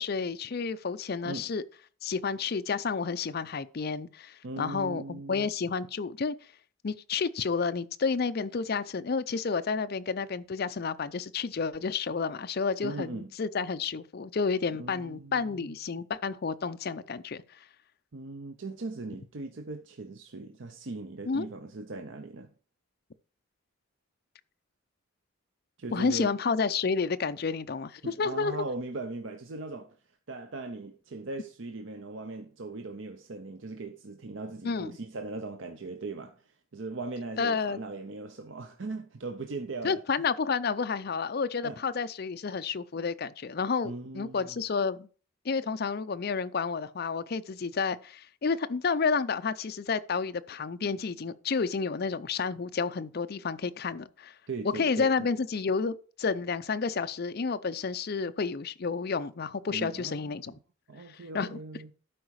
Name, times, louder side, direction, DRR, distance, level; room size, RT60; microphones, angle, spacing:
voice 1, 0.0-1.6 2.0-6.3 6.8-17.4 21.3-21.5 25.9-28.6 34.6-35.0 37.4-37.8 39.8-45.1 45.4-54.3 54.7-60.5 61.3-61.6, left 5 dB, 45° left, 0.5 m, -30 dB
voice 2, 4.4-5.5 12.8-13.3 14.8-15.7 18.1-22.5 25.8-26.4 28.0-30.0 30.3-40.0 41.6-41.8 43.8-44.6 54.5-55.3 59.7-60.5 60.9-61.9, right 3 dB, 60° right, 0.6 m, -39 dB
12.0 x 4.8 x 4.7 m
head